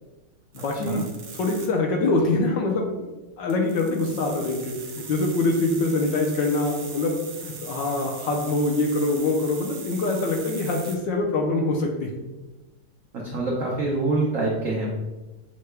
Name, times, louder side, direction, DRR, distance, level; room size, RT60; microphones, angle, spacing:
voice 1, 0.5-1.1 1.4-3.1 3.4-12.1, left 2 dB, 75° left, 1 dB, 1.1 m, -24 dB
sound 1, 0.5-1.7 3.5-11.0, right 5 dB, 65° right, 1.3 m, -40 dB
voice 2, 13.2-14.9, right 2 dB, 80° right, -3 dB, 0.7 m, -25 dB
6.5 x 2.2 x 3.2 m, 1.1 s
omnidirectional pair, 2.3 m